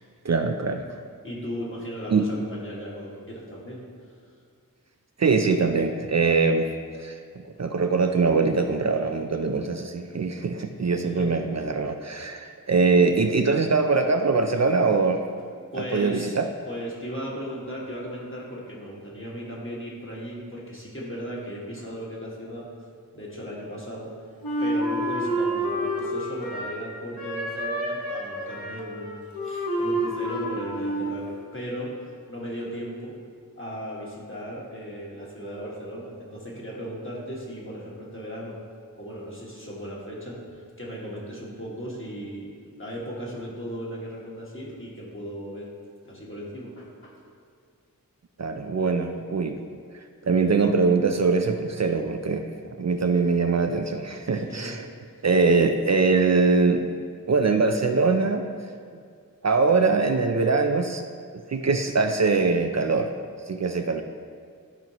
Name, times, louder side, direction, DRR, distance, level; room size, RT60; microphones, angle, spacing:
voice 1, 0.2-0.8 2.1-2.3 5.2-6.7 7.0-15.2 15.8-16.5 48.4-49.6 50.2-54.9 55.2-56.8 57.3-58.5 59.4-61.0 61.5-63.1 63.5-64.0, right 4 dB, 50° right, 6 dB, 0.4 m, -22 dB
voice 2, 1.2-3.8 11.0-11.3 15.7-16.4 16.7-22.7 23.1-24.1 24.6-33.2 33.6-38.6 39.0-42.5 42.8-45.7 46.0-47.1 54.3-54.8, equal, 35° left, -5 dB, 1.7 m, -36 dB
Wind instrument woodwind instrument, 24.4-26.9 27.2-31.2, right 1 dB, 85° left, 1.0 m, -29 dB
11.5 x 4.5 x 3.0 m, 2.2 s
wide cardioid pair, 40°, 35 cm